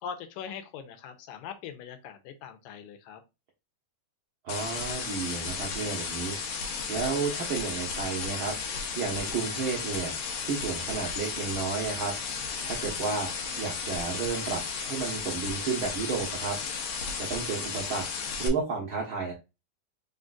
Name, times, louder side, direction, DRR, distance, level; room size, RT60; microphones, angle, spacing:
voice 1, 0.0-3.2, left 7 dB, 85° left, 7 dB, 2.3 m, -41 dB
voice 2, 4.4-6.6 6.9-10.1 10.4-12.1 12.6-13.3 13.6-16.6 17.2-18.0 18.4-19.3, right 5 dB, 80° right, -2 dB, 1.1 m, -32 dB
sound 1, 4.5-18.5, left 5 dB, 65° left, 2.0 m, -34 dB
5.0 x 3.9 x 2.4 m, 0.26 s
omnidirectional pair, 3.8 m